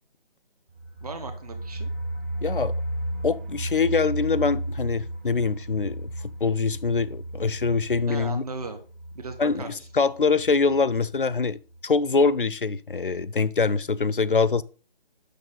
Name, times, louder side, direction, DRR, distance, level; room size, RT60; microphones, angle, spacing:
sound 1, 0.7-11.4 11.7-11.8 12.1-12.2, right 1 dB, 15° right, 0.9 m, -34 dB
voice 1, 1.0-1.9 8.1-8.8 9.1-9.7, right 3 dB, 40° right, 1.3 m, -36 dB
voice 2, 2.4-2.7 3.2-6.1 6.4-8.4 9.4-11.6 11.8-14.6, left 4 dB, 60° left, 0.6 m, -24 dB
8.3 x 6.6 x 3.9 m
figure-of-eight pair, 150°, 29 cm